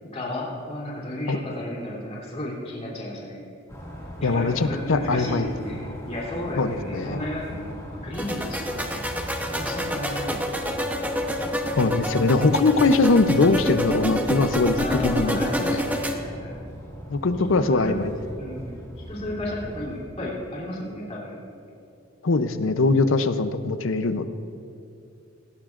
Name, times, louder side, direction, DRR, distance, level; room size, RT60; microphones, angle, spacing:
voice 1, 0.0-3.4 4.2-7.7 8.0-10.7 14.8-16.6 17.3-17.9 18.4-21.4, left 1 dB, 35° left, -5 dB, 3.2 m, -33 dB
sound 1, 3.7-20.0, equal, 15° left, 2.1 m, -39 dB
voice 2, 4.2-5.5 6.6-7.2 11.8-15.8 17.1-18.2 22.2-24.3, left 3 dB, 80° left, 11 dB, 0.7 m, -22 dB
sound 2, 8.1-16.1, equal, 10° right, 0.9 m, -27 dB
18.0 x 16.5 x 2.5 m, 2.5 s
head